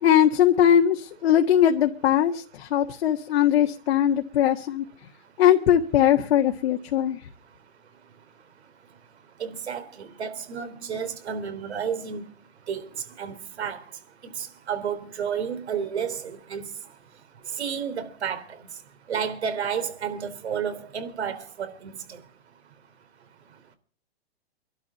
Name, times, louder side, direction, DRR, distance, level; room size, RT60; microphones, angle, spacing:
voice 1, 0.0-4.8 5.4-7.2, left 10 dB, 65° left, 1.6 m, -20 dB
voice 2, 9.4-12.3 12.7-12.9 13.2-13.8 14.2-16.7 17.6-18.6 19.1-22.2, right 7 dB, 80° right, 3.7 m, -31 dB
23.5 x 12.0 x 4.1 m
hypercardioid pair, 145°, 32 cm